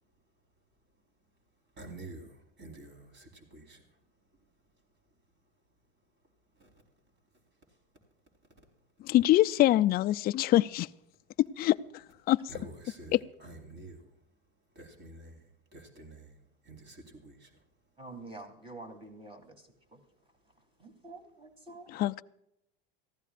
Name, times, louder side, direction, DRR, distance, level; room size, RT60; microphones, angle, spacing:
voice 1, 1.7-4.0 4.4-4.5 6.6-6.8 7.7-7.8 12.0-12.2 12.5-14.2 14.7-16.4 16.6-17.6, right 2 dB, 35° right, 4.4 m, -49 dB
voice 2, 9.0-10.9 11.4-11.8 12.3-12.4 21.9-22.2, left 15 dB, 30° left, 0.4 m, -24 dB
voice 3, 18.0-19.6 19.9-20.0 20.8-21.9, right 2 dB, 15° right, 3.2 m, -47 dB
23.5 x 15.0 x 2.5 m
supercardioid pair, 125°, 30 cm